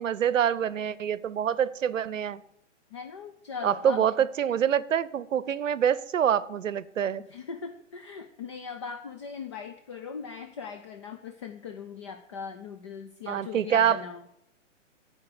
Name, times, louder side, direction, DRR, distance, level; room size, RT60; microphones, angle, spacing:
voice 1, 0.0-2.4 3.6-7.2 13.3-14.0, right 9 dB, 85° right, 0.7 m, -26 dB
voice 2, 2.9-4.1 7.2-14.2, left 6 dB, 25° left, 0.4 m, -40 dB
14.5 x 4.9 x 6.6 m
hypercardioid pair, 145°, 37 cm